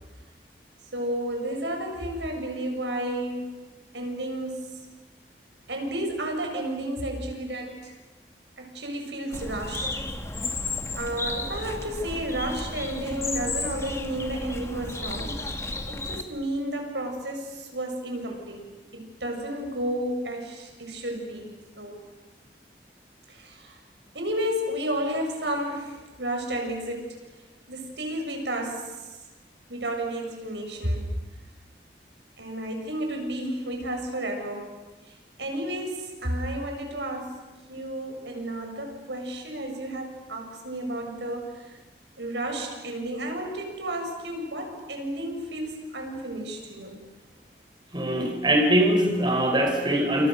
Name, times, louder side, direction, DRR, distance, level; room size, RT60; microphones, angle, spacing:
voice 1, 0.9-3.5 3.9-4.7 5.7-8.0 8.6-10.0 10.9-15.4 15.9-18.7 18.9-22.0 23.3-23.8 24.1-27.2 27.7-29.0 29.7-31.0 32.4-34.7 35.1-37.4 37.7-41.8 42.2-47.0, right 1 dB, 85° right, 3 dB, 7.3 m, -32 dB
Bird, 9.3-16.2, left 2 dB, 15° left, 1.9 m, -33 dB
voice 2, 47.9-50.3, right 1 dB, 25° right, 3 dB, 4.4 m, -22 dB
29.5 x 28.0 x 6.9 m, 1.2 s
head